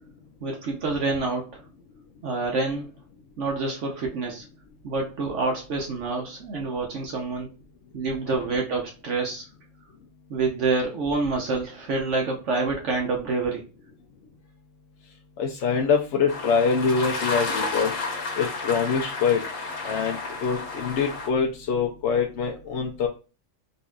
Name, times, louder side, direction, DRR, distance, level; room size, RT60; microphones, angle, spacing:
voice 1, 0.4-1.6 2.2-2.9 3.4-4.5 4.8-7.5 7.9-9.5 10.3-13.7, right 3 dB, 65° right, 1 dB, 1.1 m, -27 dB
voice 2, 15.4-17.9 18.4-19.4 19.8-23.1, left 5 dB, 70° left, 0 dB, 0.9 m, -24 dB
sound 1, 16.3-21.3, left 3 dB, 85° left, 1.5 m, -31 dB
4.0 x 2.6 x 2.3 m, 0.32 s
omnidirectional pair, 1.4 m